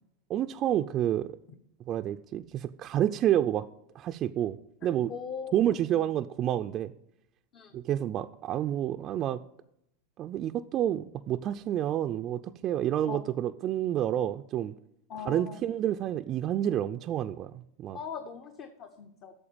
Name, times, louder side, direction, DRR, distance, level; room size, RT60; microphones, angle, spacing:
voice 1, 0.3-1.3 1.9-3.7 3.9-5.1 5.5-6.9 7.7-9.4 10.2-14.7 15.2-18.0, right 11 dB, 40° right, 0.4 m, -29 dB
voice 2, 5.1-6.1 7.5-7.8 13.0-13.2 15.1-15.6 17.9-19.3, left 6 dB, 45° left, 1.0 m, -40 dB
8.8 x 6.8 x 8.7 m
hypercardioid pair, 100°, 0 cm